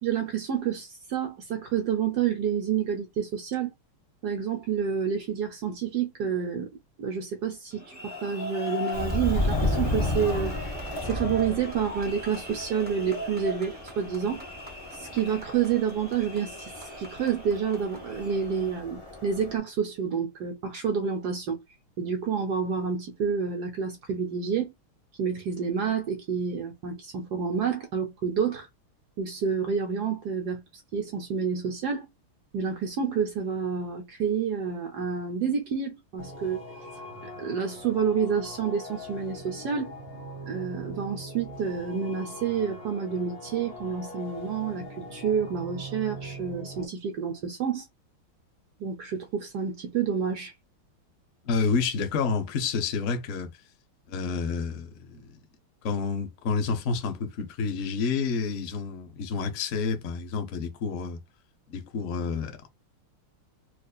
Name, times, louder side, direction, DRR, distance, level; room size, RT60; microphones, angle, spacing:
voice 1, 0.0-3.7 4.2-6.7 7.0-10.7 11.0-14.4 14.9-16.7 17.0-21.6 22.0-24.7 25.2-28.7 29.2-30.6 30.9-32.1 32.5-36.6 37.4-39.9 40.5-47.9 48.8-50.5, right 7 dB, 65° right, 1.0 m, -29 dB
sound 1, 7.7-18.8, left 1 dB, 10° right, 0.5 m, -39 dB
Subway metro underground, 8.9-19.6, left 1 dB, 55° left, 0.3 m, -33 dB
sound 2, 36.2-46.9, equal, 20° left, 1.4 m, -42 dB
voice 2, 51.4-53.5 54.1-55.2 55.8-61.2 61.7-62.7, left 5 dB, 75° left, 0.7 m, -29 dB
4.6 x 2.5 x 2.3 m
omnidirectional pair, 2.4 m